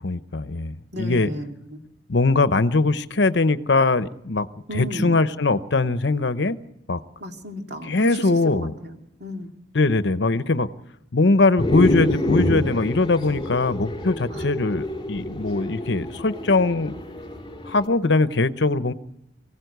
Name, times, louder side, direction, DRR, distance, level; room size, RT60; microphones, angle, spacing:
voice 1, 0.0-1.3 2.1-4.5 4.7-6.6 6.9-7.0 7.9-8.7 9.7-10.7 11.1-16.9 17.7-18.9, left 3 dB, 65° left, 13 dB, 0.9 m, -21 dB
voice 2, 0.9-1.8 4.7-5.2 7.2-8.2 8.5-9.5 14.3-14.4, equal, 60° right, 3 dB, 2.7 m, -34 dB
sound 1, 11.6-17.9, left 1 dB, 25° left, 4.7 m, -27 dB
24.0 x 16.5 x 8.1 m, 0.84 s
head